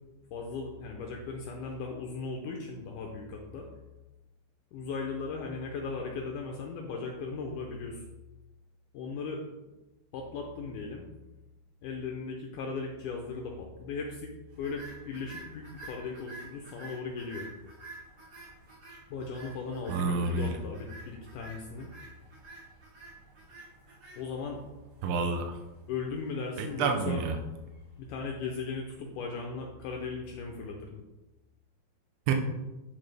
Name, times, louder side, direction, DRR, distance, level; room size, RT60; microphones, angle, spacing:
voice 1, 0.3-3.7 4.7-8.0 8.9-9.4 10.1-11.0 11.8-14.3 14.6-17.5 19.1-21.9 24.2-24.6 25.9-27.2 28.0-31.0, left 4 dB, 80° left, 1 dB, 1.9 m, -37 dB
sound 1, 14.5-28.9, right 2 dB, 60° right, 4.1 m, -51 dB
voice 2, 19.9-20.6 25.0-25.6 26.6-27.4 32.3-32.4, right 4 dB, 75° right, 3 dB, 2.4 m, -29 dB
10.5 x 3.8 x 3.3 m, 1.1 s
omnidirectional pair, 4.3 m